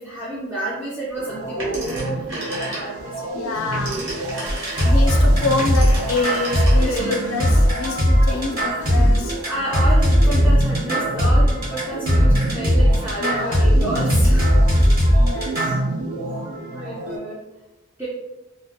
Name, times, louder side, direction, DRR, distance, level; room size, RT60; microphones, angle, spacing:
voice 1, 0.0-3.5 3.8-4.1 6.7-7.2 8.3-8.4 9.4-14.5 15.1-15.7 16.7-17.4 18.0-18.1, right 1 dB, 10° right, -8 dB, 0.4 m, -30 dB
sound 1, 1.2-17.2, right 2 dB, 90° right, 0.4 m, -30 dB
Telephone, 1.6-3.1 3.5-7.1, right 1 dB, 65° right, 0.9 m, -32 dB
voice 2, 3.3-4.1 4.8-9.4 13.2-13.7 15.2-15.8, left 3 dB, 85° left, 3 dB, 0.4 m, -26 dB
sound 2, 4.5-15.8, equal, 45° right, 1.0 m, -17 dB
2.2 x 2.0 x 2.8 m, 1.0 s
head